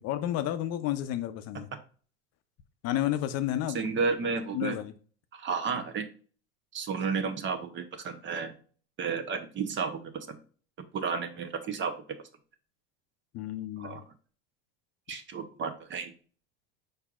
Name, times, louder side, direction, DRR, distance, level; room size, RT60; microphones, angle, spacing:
voice 1, 0.0-1.7 2.8-3.8 4.5-4.9 13.3-14.0, left 12 dB, 50° left, 0.6 m, -31 dB
voice 2, 3.7-4.8 5.3-6.0 6.7-8.5 9.0-10.4 10.9-11.9 13.8-14.0 15.1-16.1, right 5 dB, 35° right, 0.8 m, -32 dB
4.7 x 4.5 x 2.4 m
supercardioid pair, 95°, 33 cm